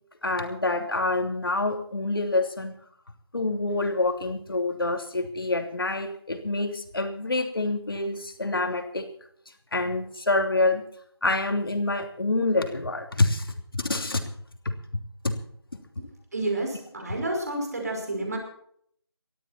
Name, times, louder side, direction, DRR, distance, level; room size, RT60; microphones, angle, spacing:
voice 1, 0.2-2.7 3.3-9.1 9.7-10.8 11.2-14.2 14.6-14.7 15.2-15.3, left 2 dB, 55° left, 5 dB, 2.9 m, -27 dB
voice 2, 16.3-18.4, right 2 dB, 35° right, 2 dB, 5.5 m, -30 dB
19.0 x 13.5 x 4.4 m, 0.65 s
figure-of-eight pair, 175°, 14 cm